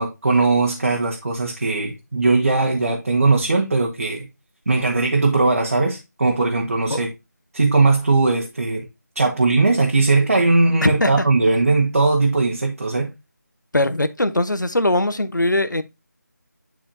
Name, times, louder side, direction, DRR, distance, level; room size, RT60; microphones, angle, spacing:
voice 1, 0.0-4.3 4.7-7.1 7.5-8.8 9.1-13.1, right 3 dB, 50° right, 1.5 m, -19 dB
voice 2, 10.8-11.1 13.7-15.8, left 1 dB, 85° left, 1.0 m, -20 dB
10.5 x 4.1 x 2.7 m
figure-of-eight pair, 165°, 10 cm